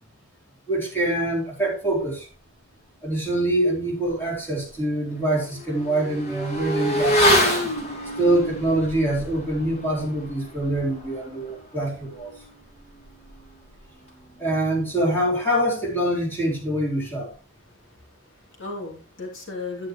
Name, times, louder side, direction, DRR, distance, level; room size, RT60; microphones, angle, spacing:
voice 1, 0.7-2.3 3.0-7.3 8.2-12.3 14.4-17.3, right 1 dB, 10° left, 4.0 m, -24 dB
Motorcycle / Accelerating revving vroom, 4.1-4.2 4.6-14.6 14.8-15.0, equal, 35° left, 3.2 m, -28 dB
voice 2, 17.7-19.9, left 3 dB, 65° left, 3.0 m, -36 dB
11.0 x 9.9 x 3.2 m
head